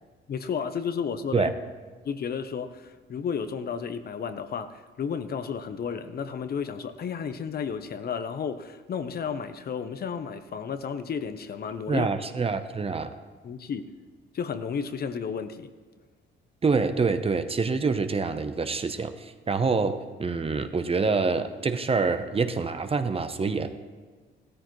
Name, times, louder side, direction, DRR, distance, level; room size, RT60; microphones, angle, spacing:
voice 1, 0.3-1.5 2.0-12.1 13.4-13.9 14.3-15.7, left 6 dB, 50° left, 10 dB, 0.8 m, -32 dB
voice 2, 11.9-13.1 16.6-23.7, right 4 dB, 30° right, 9 dB, 0.8 m, -26 dB
15.5 x 13.5 x 3.1 m, 1.4 s
cardioid pair, 90°, 20 cm